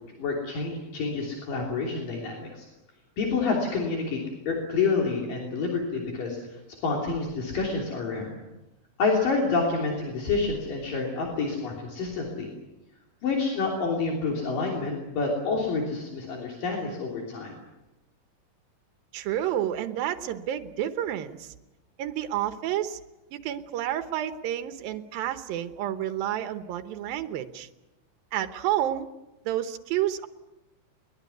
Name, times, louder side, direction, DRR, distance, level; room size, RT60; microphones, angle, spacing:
voice 1, 0.2-2.7 3.2-6.4 6.8-8.3 9.0-12.5 13.2-17.5, left 4 dB, 70° left, -1 dB, 4.9 m, -28 dB
voice 2, 19.1-21.5 22.0-23.0 23.3-27.7 28.3-29.1 29.5-30.3, right 11 dB, 90° right, 9 dB, 2.8 m, -30 dB
22.0 x 21.0 x 9.5 m, 1.0 s
omnidirectional pair, 4.0 m